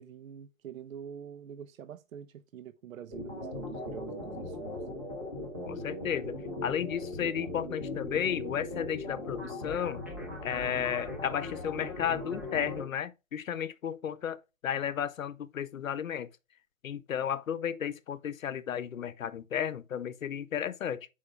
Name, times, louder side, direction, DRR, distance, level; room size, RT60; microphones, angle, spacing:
voice 1, 0.0-4.8, right 8 dB, 75° right, 0.5 m, -45 dB
sound 1, 3.1-12.8, left 2 dB, 15° right, 0.5 m, -39 dB
voice 2, 5.6-10.0 10.4-16.3 16.8-21.1, left 9 dB, 70° left, 0.7 m, -33 dB
6.9 x 4.8 x 3.5 m
hypercardioid pair, 150°, 41 cm